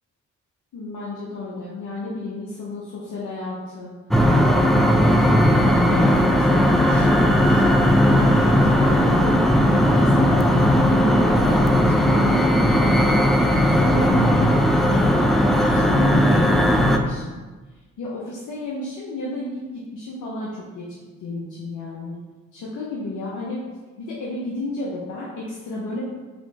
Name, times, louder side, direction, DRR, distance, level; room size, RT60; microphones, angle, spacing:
voice 1, 0.7-3.9 4.5-5.1 5.4-10.4 10.9-17.3 18.0-19.6 19.9-20.9 21.2-22.2 22.5-23.6 24.0-26.0, left 2 dB, 70° left, -6 dB, 0.8 m, -32 dB
sound 1, 4.1-17.0, equal, ahead, 0.4 m, -17 dB
4.2 x 2.9 x 2.8 m, 1.3 s
supercardioid pair, 45°, 31 cm